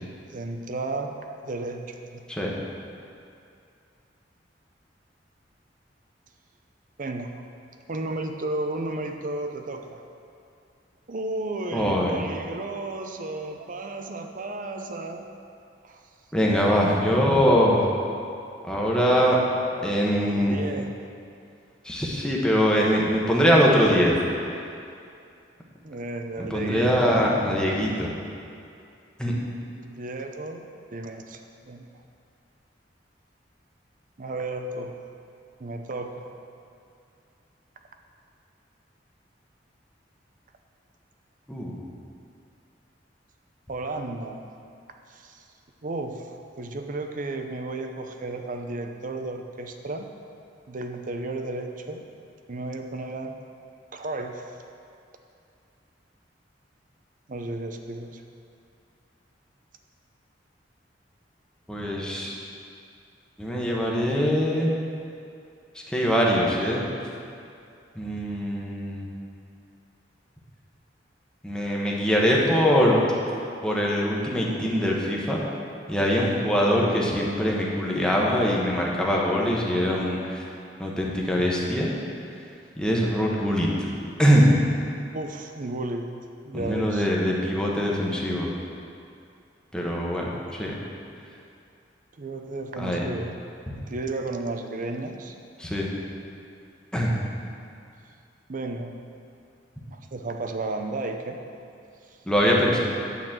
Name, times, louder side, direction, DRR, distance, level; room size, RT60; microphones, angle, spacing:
voice 1, 0.0-2.2 7.0-7.4 7.9-10.0 11.1-15.3 15.8-16.0 20.3-20.9 25.8-27.3 29.7-31.4 31.7-31.9 34.2-34.9 35.6-36.3 43.7-44.4 45.1-45.4 45.8-46.3 46.6-50.1 50.7-52.1 52.5-53.4 53.9-54.4 57.3-58.2 85.1-86.1 86.5-87.4 90.2-90.4 92.2-93.4 93.9-95.3 98.5-98.9 99.9-101.4, right 2 dB, 50° right, 5 dB, 0.6 m, -33 dB
voice 2, 11.7-12.1 16.3-17.8 18.6-19.4 19.8-20.6 21.8-24.1 26.4-28.1 29.2-29.3 41.5-41.8 61.7-62.3 63.4-64.7 65.9-66.8 67.9-69.1 71.4-73.0 73.6-75.4 75.9-80.4 80.8-81.9 82.8-83.9 84.2-84.6 86.5-88.5 89.7-90.2 90.5-90.7 92.8-93.0 95.6-95.9 96.9-97.1 102.3-102.8, equal, 5° left, -4 dB, 1.2 m, -22 dB
9.1 x 4.1 x 7.3 m, 2.5 s
head